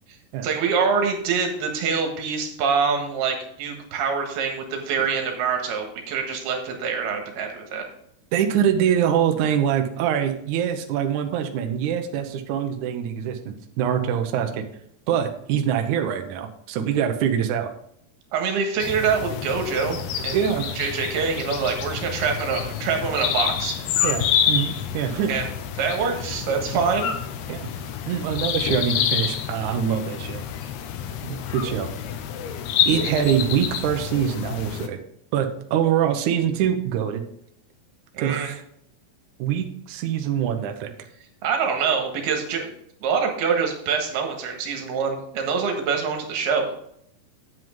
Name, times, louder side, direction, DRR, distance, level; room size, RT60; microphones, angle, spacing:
voice 1, 0.4-7.8 18.3-20.0 20.2-20.5 20.8-23.8 25.3-25.5 25.8-27.1 38.1-38.5 41.4-42.7 43.0-46.7, right 5 dB, 75° right, 3 dB, 3.3 m, -25 dB
voice 2, 8.3-14.6 15.1-17.7 20.3-20.7 24.0-25.3 26.7-26.8 27.5-27.7 28.1-30.4 31.2-31.9 32.8-35.0 35.3-37.2 38.2-38.6 39.4-40.9, right 9 dB, 90° right, 5 dB, 1.7 m, -24 dB
sound 1, 18.8-34.9, left 9 dB, 80° left, 2.8 m, -28 dB
9.4 x 7.8 x 3.7 m, 0.70 s
omnidirectional pair, 4.8 m